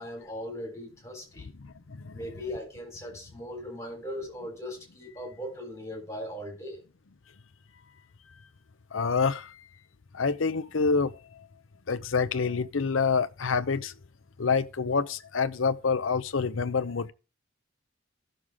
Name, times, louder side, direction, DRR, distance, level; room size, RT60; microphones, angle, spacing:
voice 1, 0.0-1.5 2.1-6.8, equal, 15° left, 3.9 m, -39 dB
voice 2, 1.6-2.2 8.9-9.5 10.1-11.2 11.9-13.9 14.4-17.1, left 5 dB, 70° left, 0.7 m, -27 dB
15.5 x 6.5 x 3.6 m
head